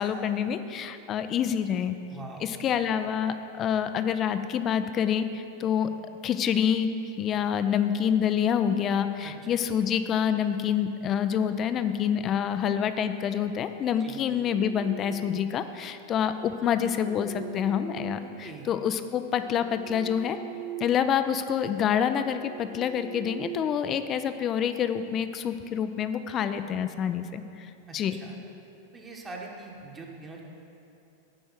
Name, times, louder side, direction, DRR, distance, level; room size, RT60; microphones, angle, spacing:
voice 1, 0.0-2.0 2.4-5.9 6.2-6.9 7.2-20.4 20.8-27.7 27.9-28.2, left 8 dB, 30° left, 10 dB, 0.5 m, -27 dB
voice 2, 2.1-2.6 9.2-9.6 14.0-14.2 18.2-18.7 27.9-28.4 28.9-30.4, right 3 dB, 20° right, -1 dB, 1.3 m, -43 dB
sound 1, 14.2-15.7 16.7-18.8 19.3-21.1 21.4-21.6 22.1-24.5, right 12 dB, 35° right, 0.4 m, -43 dB
9.0 x 5.4 x 7.6 m, 2.8 s
figure-of-eight pair, 90°, 0 cm